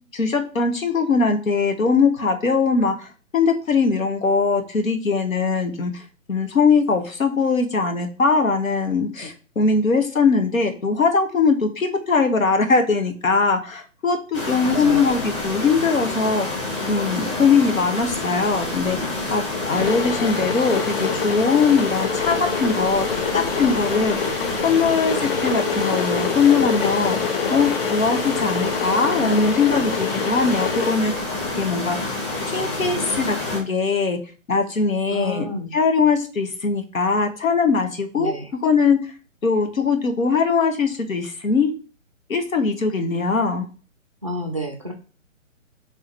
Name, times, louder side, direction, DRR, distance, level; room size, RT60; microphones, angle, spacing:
voice 1, 0.1-6.0 6.3-16.5 16.9-23.1 23.3-24.4 24.6-25.2 25.4-27.2 27.5-31.3 31.5-32.0 32.5-34.2 34.5-35.5 35.7-38.3 38.6-39.1 39.4-41.7 42.3-43.7, left 4 dB, 85° left, 6 dB, 1.1 m, -21 dB
sound 1, 14.3-33.6, left 2 dB, 20° left, 1.0 m, -28 dB
voice 2, 14.7-15.2 35.1-35.7 38.2-38.5 44.2-44.9, equal, 25° right, 1 dB, 0.3 m, -30 dB
Water / Boiling, 19.7-31.0, left 6 dB, 45° left, 0.5 m, -27 dB
3.6 x 3.2 x 4.5 m, 0.37 s
figure-of-eight pair, 145°, 40 cm